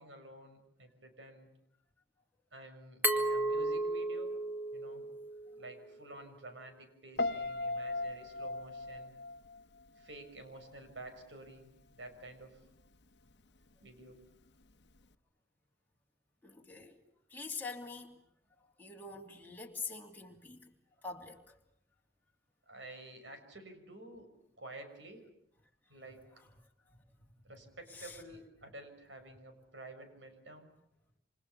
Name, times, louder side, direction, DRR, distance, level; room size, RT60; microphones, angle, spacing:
voice 1, 0.0-1.5 2.5-4.4 4.7-5.0 5.6-9.1 10.0-12.6 13.8-14.2 22.7-24.3 24.6-25.2 25.9-26.2 27.4-30.7, right 2 dB, 85° right, 6.3 m, -51 dB
Glass, 3.0-5.8, right 2 dB, 10° right, 2.2 m, -34 dB
Piano, 7.2-10.3 10.6-11.0, left 2 dB, 70° left, 1.0 m, -37 dB
voice 2, 16.4-17.0 17.3-18.1 18.8-20.7 21.0-21.6 27.9-28.2, left 4 dB, 10° left, 3.0 m, -44 dB
28.5 x 26.5 x 7.0 m
head